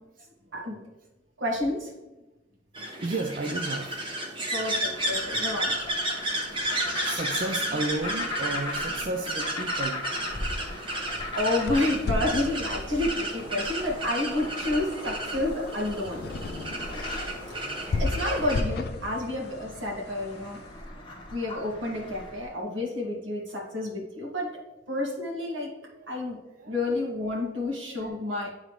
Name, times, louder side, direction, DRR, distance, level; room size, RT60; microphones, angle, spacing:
voice 1, 1.4-1.9 4.5-5.7 10.9-16.2 17.8-20.6 21.3-24.5 24.9-25.7 26.1-26.4 26.7-28.5, left 2 dB, 80° right, -2 dB, 2.0 m, -30 dB
sound 1, 2.7-18.6, right 1 dB, 25° right, 1.0 m, -33 dB
voice 2, 3.0-4.7 6.5-10.1 12.9-13.4 25.9-26.1 26.5-26.9 28.0-28.2, right 2 dB, 45° right, 3 dB, 0.5 m, -34 dB
sound 2, 4.8-22.5, left 2 dB, 25° left, 1.0 m, -39 dB
sound 3, 11.3-20.7, left 3 dB, 55° left, 0.4 m, -35 dB
9.9 x 3.9 x 3.2 m, 1.1 s
head